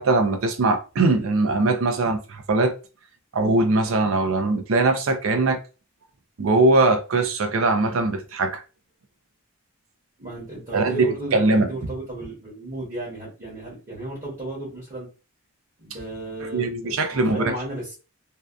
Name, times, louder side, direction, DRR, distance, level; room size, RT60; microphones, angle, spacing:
voice 1, 0.0-2.7 3.3-5.6 6.4-8.6 10.7-11.7 16.4-17.5, right 2 dB, 65° right, 0.4 m, -21 dB
voice 2, 10.2-15.1 15.8-18.0, right 1 dB, 35° right, 1.0 m, -34 dB
2.7 x 2.2 x 2.3 m
head